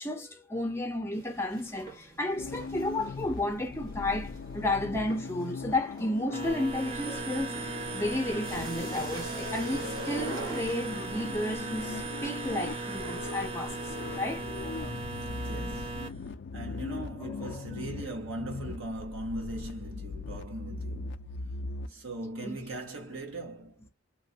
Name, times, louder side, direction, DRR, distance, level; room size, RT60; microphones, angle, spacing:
voice 1, 0.0-7.6 7.9-14.4 17.2-17.7 22.4-22.6, left 1 dB, 10° left, 0.6 m, -32 dB
sound 1, 1.1-11.7, right 2 dB, 50° right, 1.2 m, -45 dB
sound 2, 2.4-21.9, left 4 dB, 55° left, 0.4 m, -40 dB
sound 3, 6.3-16.1, right 3 dB, 30° right, 0.5 m, -37 dB
voice 2, 15.4-21.2 21.9-23.9, right 1 dB, 80° right, 1.2 m, -40 dB
3.1 x 2.3 x 2.7 m
head